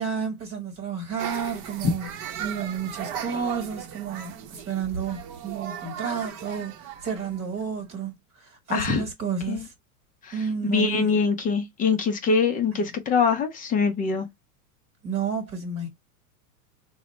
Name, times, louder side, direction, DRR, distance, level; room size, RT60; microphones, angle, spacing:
voice 1, 0.0-2.1 2.4-9.7 10.3-11.2 12.7-12.9 15.0-15.9, right 6 dB, 30° right, 1.2 m, -31 dB
sound 1, 1.2-8.1, right 9 dB, 45° right, 0.7 m, -37 dB
voice 2, 8.7-9.0 9.5-9.6 10.2-10.3 10.7-14.3, left 5 dB, 20° left, 0.4 m, -23 dB
3.8 x 2.1 x 3.0 m
supercardioid pair, 130°, 44 cm